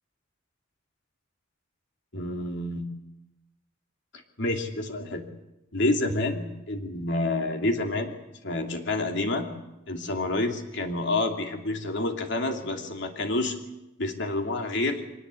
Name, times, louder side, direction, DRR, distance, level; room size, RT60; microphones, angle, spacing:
voice 1, 2.1-2.9 4.4-5.3 5.7-8.2 8.4-9.5 9.9-13.6 14.0-15.0, left 2 dB, 60° left, 4 dB, 2.8 m, -28 dB
24.0 x 19.0 x 8.5 m, 0.94 s
head